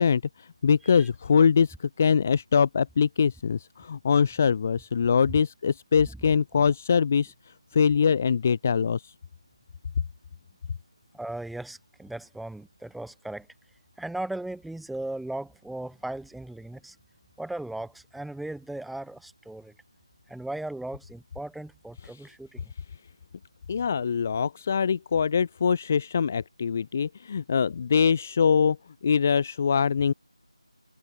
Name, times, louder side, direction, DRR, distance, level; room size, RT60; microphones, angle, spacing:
voice 1, 0.0-7.3 7.7-9.1 22.1-22.3 23.7-28.8 29.0-30.1, left 6 dB, 20° left, 1.0 m, -23 dB
voice 2, 11.1-13.5 14.0-17.0 17.4-19.7 20.3-22.7, right 1 dB, ahead, 2.7 m, -37 dB
figure-of-eight pair, 165°, 3 cm